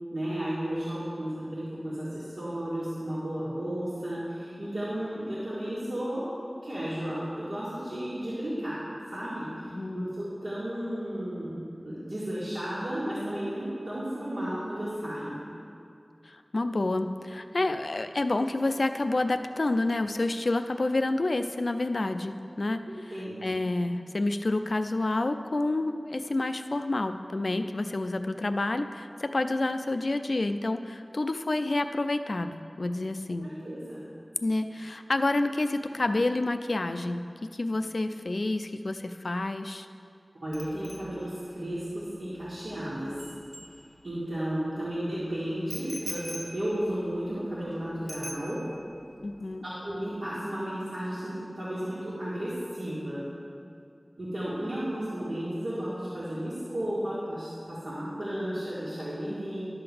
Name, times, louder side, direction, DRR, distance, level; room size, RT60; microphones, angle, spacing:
voice 1, 0.1-6.3 6.6-8.8 9.1-15.4 23.1-23.4 33.4-34.0 40.4-43.3 44.0-48.6 49.6-53.2 54.2-59.6, right 1 dB, 85° right, -12 dB, 1.9 m, -33 dB
voice 2, 9.6-10.1 16.2-22.8 23.4-33.5 34.4-37.2 37.5-39.9 49.2-49.6, left 2 dB, 80° left, 8 dB, 0.4 m, -29 dB
Bicycle bell, 40.5-44.4 45.7-47.7 48.1-49.0 49.2-49.5, equal, 25° right, 1.5 m, -44 dB
11.5 x 3.9 x 6.8 m, 2.4 s
wide cardioid pair, 50°, 0 cm